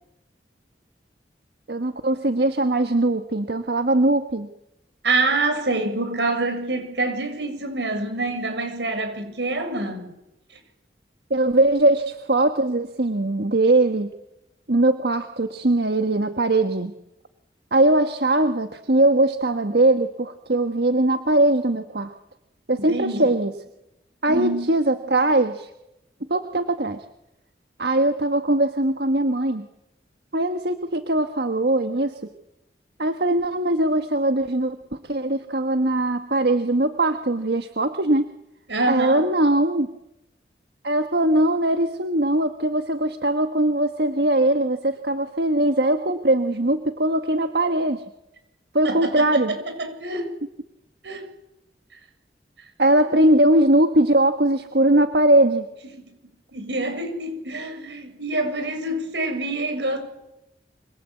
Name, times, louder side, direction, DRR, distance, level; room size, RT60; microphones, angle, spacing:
voice 1, 1.7-4.5 11.3-14.1 14.7-16.9 17.7-22.1 22.7-23.5 24.2-25.7 26.3-27.0 27.8-29.7 30.3-32.2 33.0-38.3 38.9-39.9 40.8-48.0 48.7-49.5 52.8-55.7, right 1 dB, 65° right, 1.4 m, -21 dB
voice 2, 5.0-10.1 22.7-23.3 24.3-24.7 38.7-39.3 48.8-50.3 51.0-51.3 53.0-53.2 56.5-60.0, right 2 dB, 85° right, 7.2 m, -26 dB
27.0 x 25.5 x 8.4 m
head